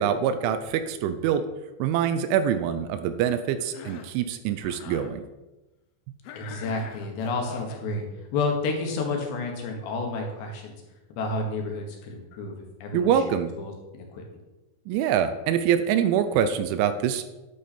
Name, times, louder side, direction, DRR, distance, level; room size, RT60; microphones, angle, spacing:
voice 1, 0.0-1.4 1.8-5.2 12.9-13.5 14.9-17.2, right 9 dB, 80° right, 10 dB, 2.9 m, -24 dB
Cough, 3.6-4.2 4.6-5.1 6.2-7.9, left 7 dB, 85° left, 2.1 m, -43 dB
voice 2, 6.4-8.1 8.3-10.8 11.1-12.6 12.8-14.2, left 3 dB, 70° left, 1 dB, 3.3 m, -30 dB
10.0 x 8.6 x 4.3 m, 1.1 s
omnidirectional pair, 5.6 m